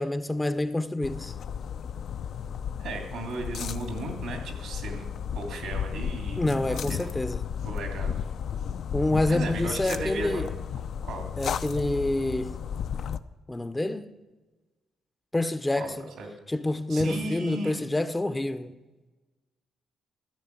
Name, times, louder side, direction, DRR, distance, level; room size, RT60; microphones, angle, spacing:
voice 1, 0.0-1.3 6.4-7.4 8.9-10.5 11.4-12.6 13.5-14.1 15.3-16.1 16.5-18.7, left 2 dB, 15° left, 0.6 m, -27 dB
sound 1, 1.0-13.2, left 8 dB, 65° left, 0.4 m, -34 dB
voice 2, 2.8-5.1 5.3-7.2 7.6-8.2 9.3-10.4 11.0-11.3 15.8-16.3 16.9-17.8, right 2 dB, 75° right, 2.6 m, -36 dB
13.5 x 5.7 x 8.3 m
cardioid pair, 90°, 0 cm